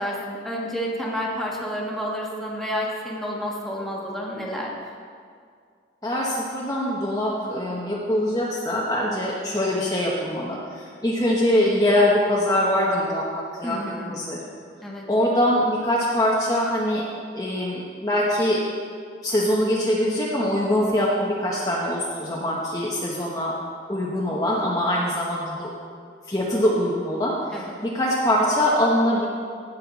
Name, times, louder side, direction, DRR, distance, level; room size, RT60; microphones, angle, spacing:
voice 1, 0.0-4.7 13.6-14.2 14.8-15.0 27.5-27.7, equal, ahead, -4 dB, 1.5 m, -30 dB
voice 2, 6.0-13.8 14.1-14.5 15.1-17.0 17.3-18.6 19.2-23.5 23.9-25.7 26.3-29.3, left 1 dB, 20° left, -5 dB, 1.0 m, -23 dB
17.0 x 6.5 x 4.0 m, 2.2 s
head